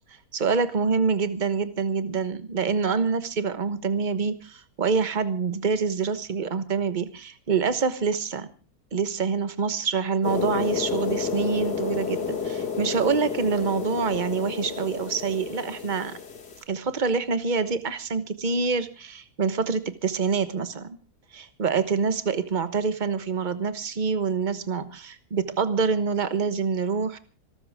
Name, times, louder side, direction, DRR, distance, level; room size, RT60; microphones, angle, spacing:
voice 1, 0.3-8.5 8.9-16.2 16.7-21.0 21.3-27.2, right 5 dB, 30° right, 12 dB, 1.2 m, -26 dB
sound 1, 10.2-16.6, left 6 dB, 85° left, 2.9 m, -30 dB
26.0 x 13.5 x 3.6 m, 0.36 s
omnidirectional pair, 1.7 m